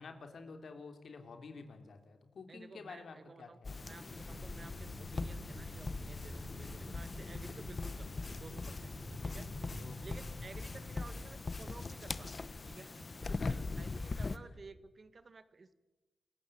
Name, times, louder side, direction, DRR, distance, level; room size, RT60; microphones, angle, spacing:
voice 1, 0.0-3.9 9.2-10.5 13.2-13.6 14.1-14.5, left 4 dB, 70° left, 6 dB, 3.3 m, -51 dB
voice 2, 2.5-8.9 9.2-9.5 10.0-15.7, right 4 dB, 50° right, 12 dB, 1.7 m, -54 dB
sound 1, 3.6-14.4, left 3 dB, 45° left, 1.2 m, -41 dB
sound 2, 4.0-12.0, left 2 dB, 30° left, 7.4 m, -48 dB
27.5 x 15.0 x 8.7 m, 1.1 s
cardioid pair, 50°, 0 cm